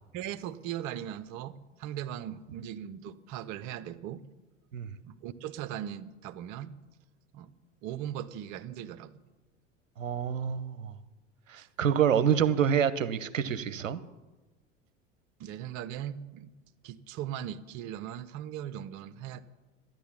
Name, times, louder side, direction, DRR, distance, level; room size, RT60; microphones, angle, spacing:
voice 1, 0.1-4.3 5.0-6.8 7.3-7.5 7.8-9.1 11.6-11.7 15.4-16.5 16.8-19.4, right 10 dB, 50° right, 13 dB, 0.9 m, -39 dB
voice 2, 10.0-10.9 11.5-14.0, right 8 dB, 85° right, 14 dB, 0.8 m, -27 dB
13.5 x 10.5 x 7.2 m, 1.2 s
figure-of-eight pair, 75°, 38 cm